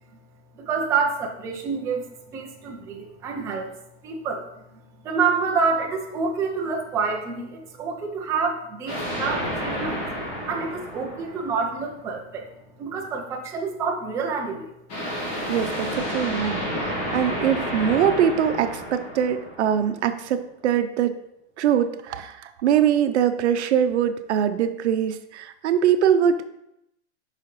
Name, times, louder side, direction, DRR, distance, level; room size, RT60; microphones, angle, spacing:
voice 1, 0.5-2.1 2.3-10.1 10.5-12.5 12.8-14.7, right 5 dB, 10° right, 0 dB, 0.4 m, -28 dB
sound 1, 8.9-12.0 14.9-20.1, equal, 35° left, 2.1 m, -30 dB
voice 2, 15.5-21.1 21.6-26.4, right 9 dB, 75° right, 9 dB, 0.8 m, -22 dB
8.8 x 5.7 x 3.2 m, 0.82 s
supercardioid pair, 165°, 35 cm